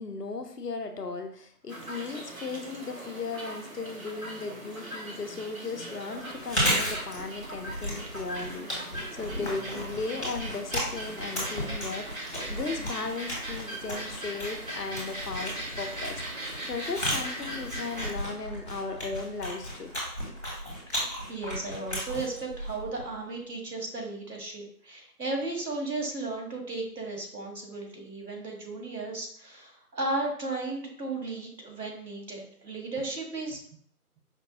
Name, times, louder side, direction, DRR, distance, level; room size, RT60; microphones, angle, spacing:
voice 1, 0.0-19.9, left 4 dB, 80° left, 6 dB, 0.8 m, -36 dB
sound 1, 1.7-18.1, right 1 dB, 60° right, 1.0 m, -40 dB
Chewing mastication, 6.3-23.2, equal, 40° left, 1.7 m, -34 dB
voice 2, 20.9-33.6, right 2 dB, 90° right, 1 dB, 1.6 m, -35 dB
5.1 x 2.7 x 2.7 m, 0.63 s
figure-of-eight pair, 175°, 47 cm